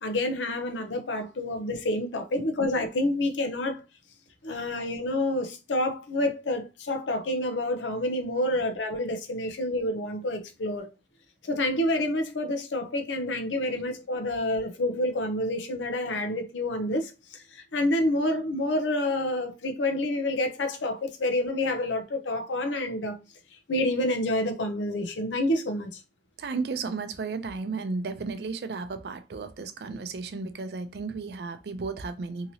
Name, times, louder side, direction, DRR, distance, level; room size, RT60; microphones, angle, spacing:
voice 1, 0.0-3.8 4.4-10.9 11.4-23.2 23.7-26.0, left 1 dB, 85° left, 0.6 m, -28 dB
voice 2, 26.4-32.5, right 4 dB, 60° right, 0.4 m, -34 dB
2.8 x 2.7 x 2.7 m
head